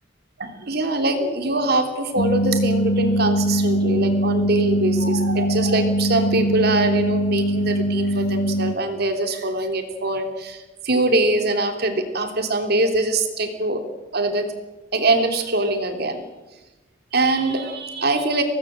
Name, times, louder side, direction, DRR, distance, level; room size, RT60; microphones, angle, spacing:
voice 1, 0.4-13.8 14.1-14.5 14.9-16.2 17.1-18.4, right 2 dB, 55° right, 6 dB, 3.2 m, -23 dB
sound 1, 2.2-8.7, right 1 dB, 65° left, 1.4 m, -22 dB
25.0 x 18.5 x 7.7 m, 1.2 s
head